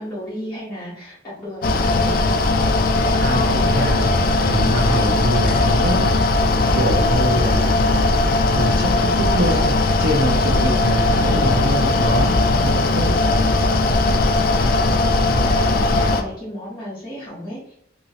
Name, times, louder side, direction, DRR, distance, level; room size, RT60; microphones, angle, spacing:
voice 1, 0.0-2.1 14.9-17.7, equal, 20° left, -12 dB, 1.0 m, -34 dB
Mechanical fan, 1.6-16.2, left 2 dB, 50° left, 0.3 m, -18 dB
sound 1, 2.9-8.9, left 1 dB, 75° left, 0.7 m, -33 dB
voice 2, 3.2-4.2 4.4-6.1 6.7-8.0 8.5-8.9 9.2-9.7 10.0-13.1, right 1 dB, 65° right, 0 dB, 0.7 m, -24 dB
3.0 x 2.8 x 2.8 m, 0.68 s
head